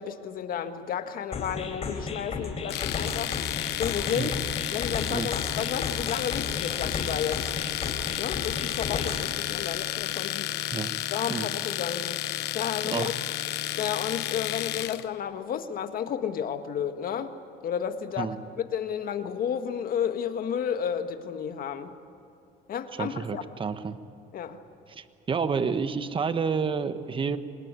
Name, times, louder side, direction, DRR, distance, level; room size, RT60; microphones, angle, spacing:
voice 1, 0.0-3.3 3.8-4.4 4.7-7.5 8.2-10.5 11.1-12.3 12.5-13.1 13.8-17.3 17.6-18.3 18.7-21.9 22.7-23.4 24.3-24.6, left 8 dB, 60° left, 8 dB, 1.7 m, -32 dB
sound 1, 1.3-9.3, left 4 dB, 40° left, 4.1 m, -34 dB
Domestic sounds home sounds, 2.7-15.0, left 14 dB, 85° left, 1.0 m, -32 dB
voice 2, 23.0-24.0 24.9-27.4, right 5 dB, 30° right, 11 dB, 1.3 m, -29 dB
26.0 x 21.0 x 8.4 m, 2.6 s
cardioid pair, 110°, 17 cm